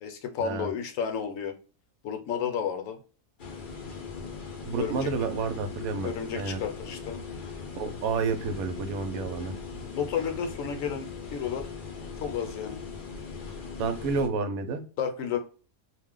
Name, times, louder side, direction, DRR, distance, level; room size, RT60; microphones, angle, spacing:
voice 1, 0.0-1.5 2.0-3.0 4.7-5.1 6.0-7.2 9.8-11.7 12.2-12.8 15.0-15.4, left 7 dB, 70° left, 5 dB, 1.0 m, -32 dB
sound 1, 3.4-14.3, left 5 dB, 55° left, 0.6 m, -40 dB
voice 2, 4.6-6.6 7.8-9.5 13.8-14.8, right 4 dB, 75° right, 8 dB, 1.0 m, -30 dB
2.5 x 2.1 x 3.6 m, 0.38 s
omnidirectional pair, 1.5 m